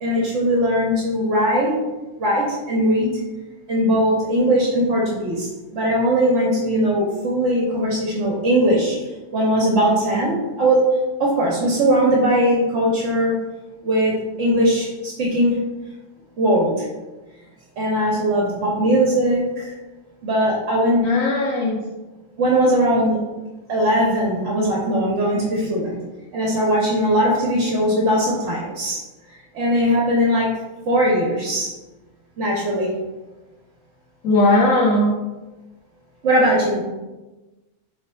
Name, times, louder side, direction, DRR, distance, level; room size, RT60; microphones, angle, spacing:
voice 1, 0.0-1.7 2.2-3.1 3.7-9.0 9.3-13.4 13.8-15.6 16.4-16.9 17.8-19.7 20.2-21.1 22.4-23.2 23.7-26.0 26.3-29.0 29.5-30.5 30.9-31.7 32.4-32.9 36.2-36.8, equal, 65° right, -3 dB, 1.2 m, -19 dB
voice 2, 21.0-21.8 34.2-35.1, left 2 dB, 85° left, -3 dB, 1.2 m, -18 dB
3.3 x 3.2 x 4.4 m, 1.1 s
omnidirectional pair, 1.3 m